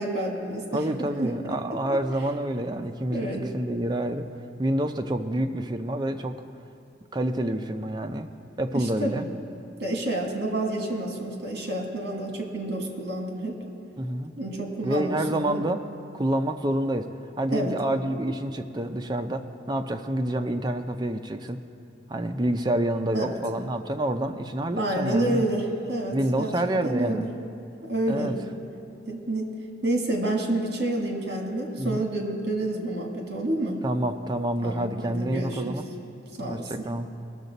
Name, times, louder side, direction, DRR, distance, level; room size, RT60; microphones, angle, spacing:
voice 1, 0.0-1.6 1.9-2.0 3.1-3.5 8.7-9.3 9.8-13.6 14.3-15.6 17.5-17.7 23.1-23.4 24.8-27.3 27.9-28.4 29.1-29.5 29.8-33.8 34.6-35.8 36.4-36.9, right 1 dB, 60° right, 1 dB, 1.5 m, -29 dB
voice 2, 0.7-4.3 4.6-6.3 7.1-8.3 8.6-9.2 14.0-14.3 14.8-15.8 16.1-17.1 17.4-21.6 22.1-25.5 26.1-27.3 28.1-28.4 31.8-32.0 33.8-35.8 36.3-37.1, right 1 dB, 25° right, 6 dB, 0.4 m, -28 dB
19.5 x 6.6 x 4.0 m, 2.6 s
head